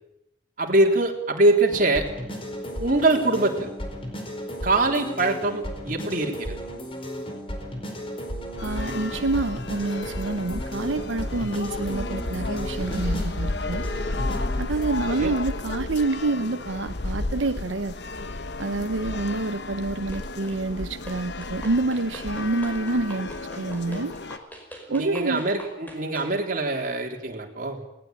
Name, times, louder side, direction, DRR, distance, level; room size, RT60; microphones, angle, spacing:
voice 1, 0.6-2.1 2.8-3.7 4.6-6.6 15.1-15.3 24.9-27.8, right 2 dB, 45° right, 1 dB, 3.7 m, -23 dB
sound 1, 1.7-14.6, equal, 30° left, 4.6 m, -35 dB
sound 2, 8.6-24.4, left 2 dB, 60° left, 1.1 m, -32 dB
voice 2, 8.6-13.9 14.6-18.0 18.6-24.1 24.9-25.4, right 2 dB, 85° right, 9 dB, 0.8 m, -27 dB
sound 3, 20.1-20.6 21.1-26.4, equal, 10° left, 5.2 m, -43 dB
20.0 x 19.0 x 8.9 m, 0.82 s
head